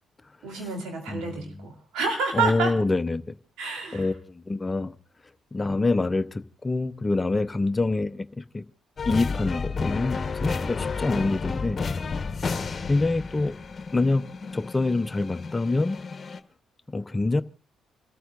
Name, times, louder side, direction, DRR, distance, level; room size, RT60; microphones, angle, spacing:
voice 1, 0.4-2.8 3.6-4.1, right 4 dB, 75° right, 3.4 m, -29 dB
voice 2, 1.1-1.6 2.3-3.4 3.9-5.0 5.5-8.6 9.0-11.8 12.9-13.5 13.9-16.0 16.9-17.4, left 3 dB, 25° left, 0.8 m, -26 dB
sound 1, 9.0-16.4, left 4 dB, 40° left, 1.2 m, -31 dB
29.5 x 14.0 x 2.6 m
hypercardioid pair, 45°, 0 cm